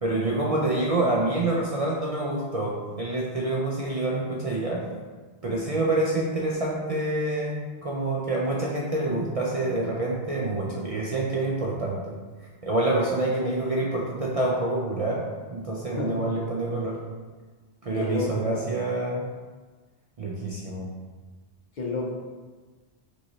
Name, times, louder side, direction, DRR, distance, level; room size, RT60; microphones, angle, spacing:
voice 1, 0.0-4.9 5.4-12.1 12.6-17.0 17.8-19.3 20.2-20.9, right 2 dB, 45° right, -4 dB, 0.5 m, -27 dB
voice 2, 18.0-18.6 21.8-22.1, left 3 dB, 50° left, -2 dB, 0.7 m, -30 dB
5.2 x 3.1 x 2.9 m, 1.4 s
omnidirectional pair, 1.1 m